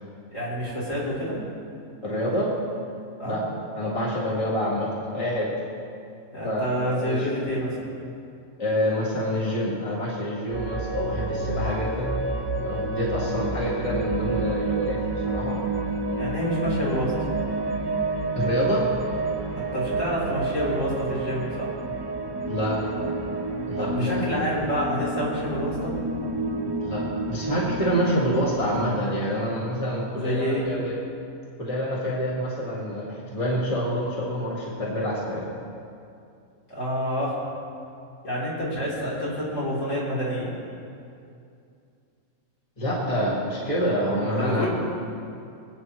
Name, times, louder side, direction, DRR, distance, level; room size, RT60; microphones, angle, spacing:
voice 1, 0.3-1.4 3.2-3.4 6.3-7.8 16.2-17.1 19.7-21.7 23.8-25.9 30.1-30.7 36.7-37.4 38.2-40.5 44.4-44.7, equal, 55° left, -8 dB, 4.0 m, -28 dB
voice 2, 2.0-2.5 3.2-3.4 3.8-5.5 6.4-7.3 8.6-12.2 12.6-15.6 18.3-18.9 22.5-23.0 23.7-24.2 26.8-30.9 31.6-35.5 42.8-44.6, equal, 25° left, -6 dB, 1.9 m, -27 dB
sound 1, 10.5-28.9, right 3 dB, 30° right, 0.4 m, -29 dB
25.0 x 8.4 x 3.1 m, 2.5 s
omnidirectional pair, 1.5 m